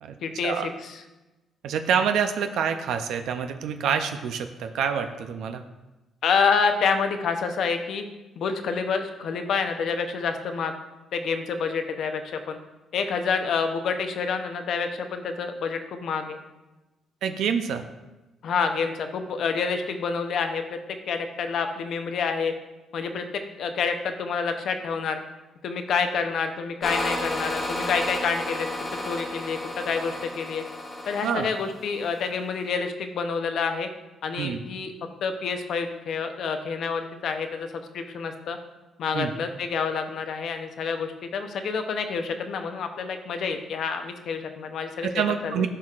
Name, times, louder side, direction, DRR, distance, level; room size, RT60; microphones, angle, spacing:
voice 1, 0.2-0.5 0.8-1.0 6.2-8.0 8.4-10.7 11.1-12.6 12.9-16.4 18.4-20.8 21.1-22.5 22.9-25.2 25.6-28.7 29.1-30.6 31.1-33.9 34.2-34.9 35.2-37.7 37.9-38.6 39.0-45.1 45.4-45.7, left 5 dB, 70° left, 7 dB, 0.7 m, -28 dB
voice 2, 1.6-5.6 17.2-17.8 31.2-31.5 34.4-34.6 39.1-39.3 45.0-45.7, right 7 dB, 80° right, 7 dB, 0.4 m, -27 dB
sound 1, 26.8-32.3, left 1 dB, 25° left, 1.2 m, -32 dB
12.0 x 4.6 x 2.4 m, 1.1 s
cardioid pair, 90°, 0 cm